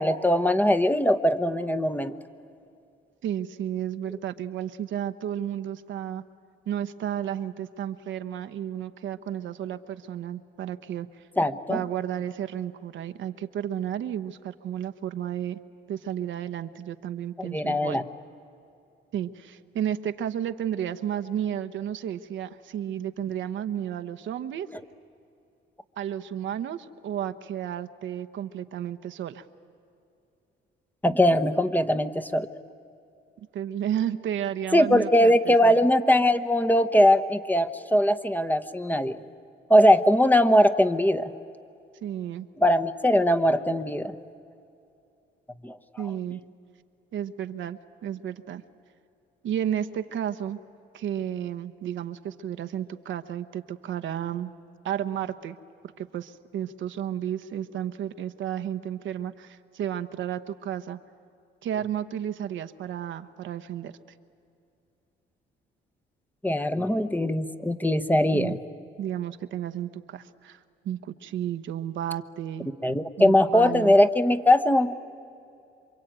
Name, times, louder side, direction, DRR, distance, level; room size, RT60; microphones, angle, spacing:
voice 1, 0.0-2.1 11.4-11.8 17.4-18.0 31.0-32.5 34.7-39.2 39.7-41.3 42.6-44.1 45.6-45.8 66.4-68.6 72.8-74.9, left 1 dB, 10° left, 8 dB, 1.1 m, -21 dB
voice 2, 3.2-6.2 6.7-11.2 11.7-15.6 15.9-18.0 19.1-24.7 26.0-29.4 33.4-35.8 42.0-42.5 46.0-46.4 47.1-48.6 49.4-50.6 50.9-54.5 54.8-55.6 56.0-61.0 61.6-63.9 68.3-68.6 69.0-72.7 73.2-73.9, right 10 dB, 75° right, 9 dB, 1.1 m, -32 dB
27.5 x 23.5 x 9.1 m, 2.6 s
cardioid pair, 90°, 20 cm